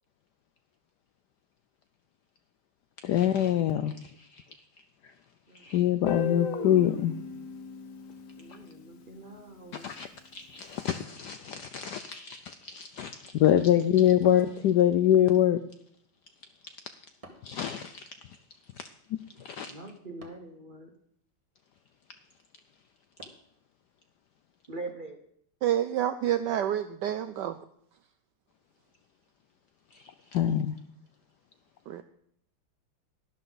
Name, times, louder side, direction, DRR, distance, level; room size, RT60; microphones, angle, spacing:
voice 1, 3.0-4.4 5.5-7.1 8.5-8.6 9.8-15.6 17.4-18.0 18.8-18.9 19.4-19.7 30.3-30.8, left 11 dB, 75° left, 0.9 m, -25 dB
Guitar, 6.1-9.0, left 6 dB, 50° left, 1.2 m, -35 dB
voice 2, 8.4-10.0 19.5-20.9 24.7-25.2, right 2 dB, 40° right, 0.8 m, -43 dB
sound 1, 14.2-15.1 17.2-17.7 20.2-20.6 23.2-23.6, right 2 dB, 20° right, 1.3 m, -52 dB
voice 3, 25.6-27.6 31.9-32.0, right 11 dB, 75° right, 1.0 m, -28 dB
12.0 x 11.0 x 4.0 m
omnidirectional pair, 2.3 m